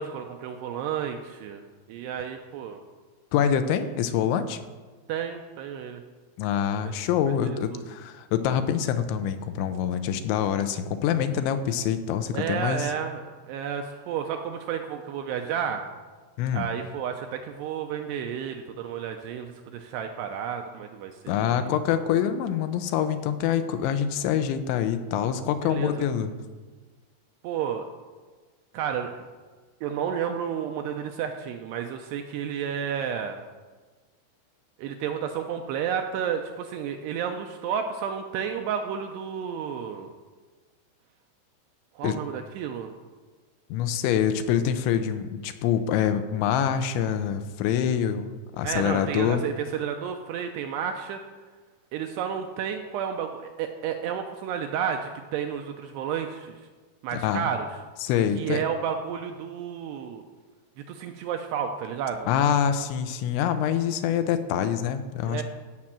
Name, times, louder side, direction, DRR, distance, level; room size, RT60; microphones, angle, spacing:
voice 1, 0.0-1.6 1.9-2.8 5.1-6.0 6.8-6.9 7.3-7.8 12.3-15.8 16.5-21.7 25.6-26.1 27.4-27.9 28.7-29.2 29.8-33.4 34.8-40.1 41.9-42.9 48.6-51.2 51.9-56.7 57.0-57.7 58.4-60.2 60.8-62.3 65.2-65.4, right 8 dB, 80° right, 5 dB, 2.5 m, -31 dB
voice 2, 3.3-4.6 6.4-12.9 16.4-16.7 21.3-26.3 42.0-42.2 43.7-49.4 57.1-57.5 58.0-58.6 62.3-65.4, left 9 dB, 80° left, 10 dB, 3.0 m, -25 dB
16.0 x 5.9 x 7.5 m, 1.4 s
omnidirectional pair, 5.4 m